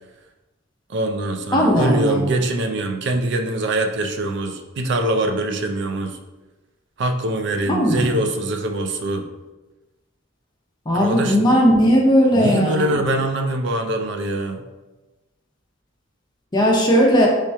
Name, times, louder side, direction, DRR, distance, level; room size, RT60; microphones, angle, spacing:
voice 1, 0.9-6.2 7.0-9.3 10.9-11.5 12.3-14.6, right 1 dB, 60° right, 5 dB, 0.4 m, -23 dB
voice 2, 1.5-2.2 7.7-8.2 10.9-13.0 16.5-17.3, equal, 20° left, -1 dB, 0.6 m, -17 dB
3.4 x 2.9 x 3.3 m, 1.1 s
head